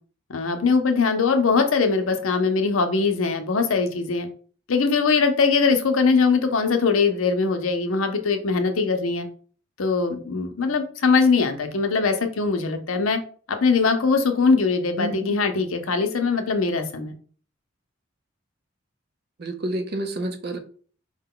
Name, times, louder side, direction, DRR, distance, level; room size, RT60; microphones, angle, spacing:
voice 1, 0.3-4.3 4.7-9.3 9.8-13.2 13.5-17.1, left 4 dB, 90° left, 0.7 m, -21 dB
voice 2, 15.0-15.3 19.4-20.6, right 1 dB, 50° right, 0.6 m, -29 dB
4.7 x 2.2 x 3.7 m
head